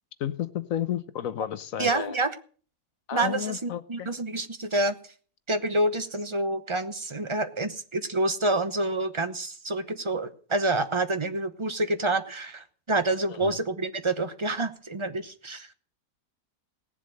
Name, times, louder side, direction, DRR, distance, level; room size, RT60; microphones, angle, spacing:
voice 1, 0.2-2.2 3.1-4.1 13.3-13.6, left 10 dB, 65° left, 13 dB, 1.1 m, -32 dB
voice 2, 1.8-2.3 3.1-4.9 5.5-15.7, right 2 dB, 25° right, 10 dB, 0.8 m, -28 dB
18.0 x 7.6 x 6.5 m, 0.43 s
omnidirectional pair, 1.6 m